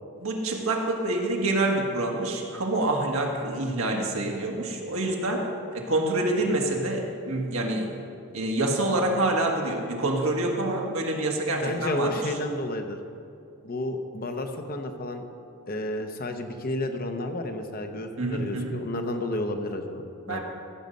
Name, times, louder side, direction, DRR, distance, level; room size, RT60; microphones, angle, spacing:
voice 1, 0.2-5.5 5.7-7.9 8.3-12.2 18.2-18.8 20.3-20.4, right 2 dB, 70° right, 0 dB, 1.6 m, -27 dB
voice 2, 11.6-13.0 13.6-15.3 15.7-20.4, left 1 dB, 40° left, 6 dB, 0.8 m, -31 dB
14.5 x 6.8 x 5.3 m, 2.6 s
head